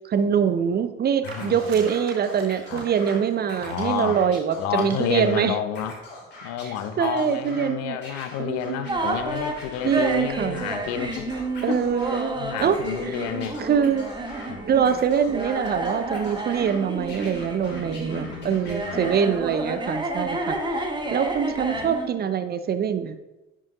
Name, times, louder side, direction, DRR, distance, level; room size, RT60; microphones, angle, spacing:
voice 1, 0.0-5.6 6.7-8.0 8.4-9.0 9.8-10.7 11.6-12.8 13.1-13.2 13.6-14.1 14.6-23.2, right 7 dB, 30° right, 11 dB, 0.6 m, -24 dB
voice 2, 1.2-1.6 2.7-2.8 3.6-4.2 4.6-6.0 6.4-11.3 11.7-11.8 12.4-13.6 14.5-14.6 17.6-19.2 21.7-21.9, left 10 dB, 55° left, 11 dB, 0.6 m, -30 dB
Scratching (performance technique), 1.2-3.1 3.4-5.4 5.7-7.7 8.0-10.2 10.6-12.2 12.5-14.5 14.8-16.8 17.1-19.3, left 2 dB, 35° left, 2.7 m, -43 dB
sound 1, 1.3-4.1 4.7-4.9, right 4 dB, 80° right, 1.0 m, -42 dB
sound 2, 8.9-22.1, right 2 dB, 15° right, 1.1 m, -31 dB
10.5 x 5.9 x 2.3 m, 1.0 s
figure-of-eight pair, 50°, 31 cm